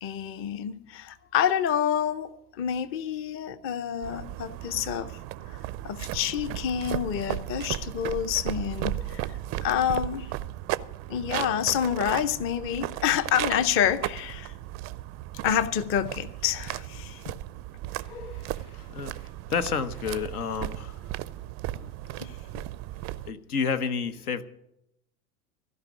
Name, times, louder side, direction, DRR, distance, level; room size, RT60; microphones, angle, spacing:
voice 1, 0.0-5.1 5.5-9.3 9.6-10.3 11.1-14.5 15.4-17.2 18.1-18.4 22.2-22.6, left 9 dB, 30° left, 14 dB, 0.7 m, -28 dB
sound 1, 4.0-23.3, right 15 dB, 30° right, 0.4 m, -35 dB
voice 2, 18.0-21.2 21.7-21.9 23.2-24.4, left 6 dB, 75° left, 10 dB, 1.1 m, -31 dB
15.5 x 5.4 x 9.9 m, 0.81 s
hypercardioid pair, 85°, 45 cm